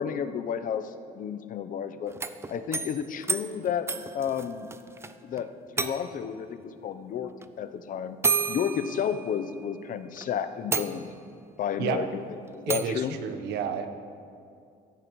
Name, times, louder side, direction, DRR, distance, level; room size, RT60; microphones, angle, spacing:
voice 1, 0.0-2.2 2.5-3.9 4.1-4.7 5.2-5.5 5.8-7.3 7.6-8.2 8.5-11.1 11.6-12.2 12.5-13.2, left 8 dB, 55° left, 11 dB, 0.7 m, -31 dB
sound 1, 2.1-5.1 5.4-5.5 5.8-6.3 7.4-7.5 8.2-9.7 10.2-10.3 10.7-11.4 12.7-13.0, right 4 dB, 15° right, 0.5 m, -31 dB
voice 2, 12.7-14.0, right 7 dB, 80° right, 7 dB, 1.0 m, -31 dB
16.0 x 14.0 x 3.1 m, 2.4 s
cardioid pair, 110°, 17 cm